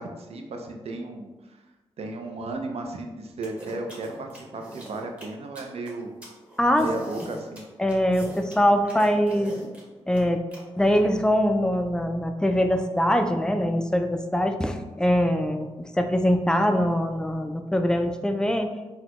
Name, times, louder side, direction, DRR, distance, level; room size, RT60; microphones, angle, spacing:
voice 1, 0.0-1.6 2.0-6.2 6.8-7.6, right 2 dB, 65° right, 3 dB, 0.5 m, -34 dB
sound 1, 3.4-10.6, equal, 10° right, 1.0 m, -42 dB
voice 2, 7.8-9.5 10.1-10.4 10.8-15.7 16.0-18.7, equal, 5° left, 6 dB, 0.3 m, -23 dB
3.9 x 2.2 x 3.0 m, 1.2 s
cardioid pair, 70°, 11 cm